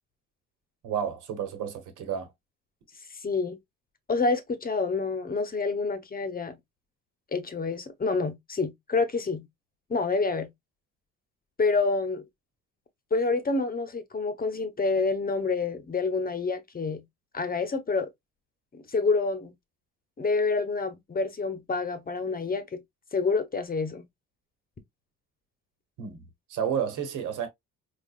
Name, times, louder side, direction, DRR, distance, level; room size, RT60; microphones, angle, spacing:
voice 1, 0.8-2.3 26.0-26.2 26.5-27.5, right 8 dB, 90° right, 1.1 m, -31 dB
voice 2, 3.2-3.6 4.1-6.5 7.3-9.5 9.9-10.5 11.6-12.2 13.1-17.0 17.3-18.1 18.7-19.5 20.2-22.8 23.1-24.0, left 4 dB, 30° left, 0.9 m, -27 dB
4.8 x 2.4 x 2.3 m
cardioid pair, 90°, 30 cm